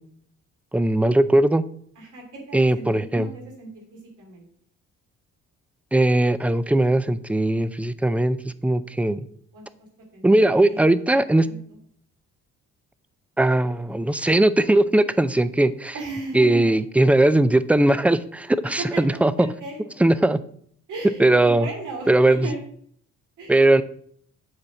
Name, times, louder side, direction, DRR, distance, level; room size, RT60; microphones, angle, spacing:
voice 1, 0.7-1.7 2.5-3.3 5.9-9.2 10.2-11.5 13.4-15.9 16.3-18.8 19.2-19.3 20.0-20.4 21.2-21.7 22.1-22.5 23.5-23.8, right 1 dB, 5° right, 14 dB, 0.3 m, -19 dB
voice 2, 1.9-2.9 3.1-4.4 9.5-9.6 10.1-11.8 15.9-16.7 18.8-20.1 20.9-22.6 23.4-23.5, right 2 dB, 80° right, -1 dB, 3.0 m, -36 dB
8.0 x 4.2 x 5.8 m, 0.63 s
cardioid pair, 90°, 30 cm